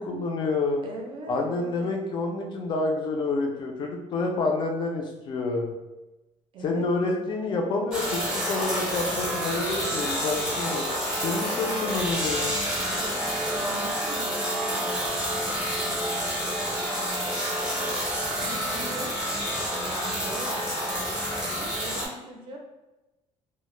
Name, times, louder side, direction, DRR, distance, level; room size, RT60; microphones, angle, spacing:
voice 1, 0.0-0.8 1.3-5.7 6.6-12.6, left 3 dB, 40° left, 2 dB, 0.4 m, -28 dB
voice 2, 0.8-1.9 6.5-7.2 12.7-18.0 18.4-19.1 19.7-22.6, right 2 dB, 40° right, 1 dB, 0.5 m, -41 dB
sound 1, 7.9-22.1, equal, 5° right, 0.7 m, -29 dB
2.1 x 2.0 x 3.0 m, 1.0 s
cardioid pair, 165°, 13 cm